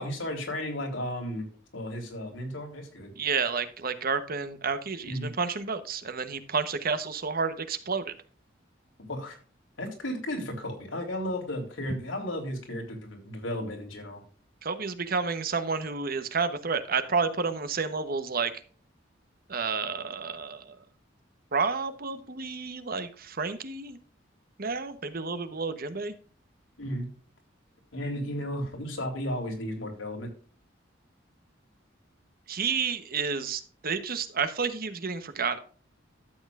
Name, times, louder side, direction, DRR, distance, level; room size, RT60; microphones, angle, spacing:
voice 1, 0.0-1.5 1.7-3.1 5.0-5.3 9.1-9.4 9.8-14.2 26.8-27.1 27.9-30.3, equal, 80° left, 2 dB, 3.5 m, -34 dB
voice 2, 3.2-8.1 14.6-18.5 19.5-20.8 21.5-24.0 24.6-26.1 32.5-35.6, right 5 dB, 50° right, 11 dB, 1.0 m, -30 dB
13.0 x 8.0 x 2.5 m, 0.41 s
head